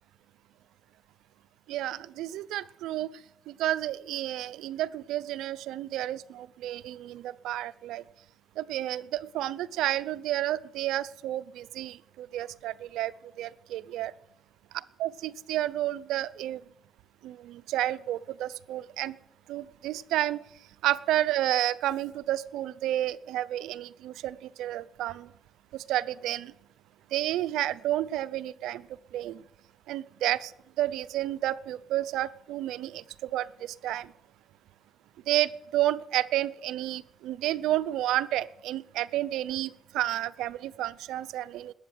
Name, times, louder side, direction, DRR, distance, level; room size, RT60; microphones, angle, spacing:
voice 1, 1.7-3.1 3.5-8.0 8.6-13.1 13.4-14.1 14.7-16.6 17.2-19.1 19.5-20.4 20.8-25.3 25.7-26.5 27.1-28.9 29.1-29.4 29.9-30.5 30.8-34.1 35.3-41.7, right 13 dB, 90° right, 16 dB, 0.6 m, -31 dB
20.0 x 8.7 x 7.8 m, 0.80 s
cardioid pair, 90°, 0 cm